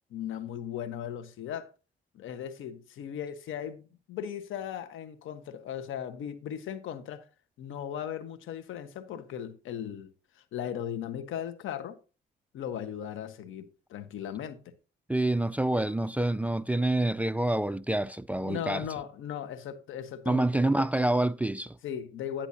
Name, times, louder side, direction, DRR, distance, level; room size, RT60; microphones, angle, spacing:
voice 1, 0.1-1.7 2.1-7.2 7.6-10.1 10.5-12.0 12.5-14.6 18.4-20.5 20.8-20.9 21.8-22.5, left 9 dB, 80° left, 1.3 m, -37 dB
voice 2, 15.1-18.9 20.3-21.8, right 1 dB, 5° right, 0.4 m, -27 dB
10.0 x 10.0 x 2.8 m
cardioid pair, 90°, 20 cm